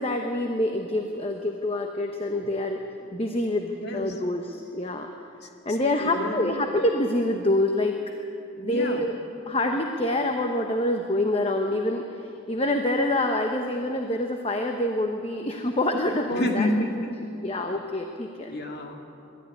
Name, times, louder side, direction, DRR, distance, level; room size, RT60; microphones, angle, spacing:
voice 1, 0.0-2.8 3.1-5.1 5.6-8.0 8.6-9.1 9.5-16.7 17.4-18.6, left 1 dB, 30° left, 4 dB, 1.0 m, -26 dB
voice 2, 3.8-4.2 5.4-6.5 8.6-9.1 16.3-17.3 18.5-19.0, left 1 dB, 55° left, 2 dB, 2.2 m, -30 dB
22.5 x 13.0 x 9.7 m, 2.8 s
head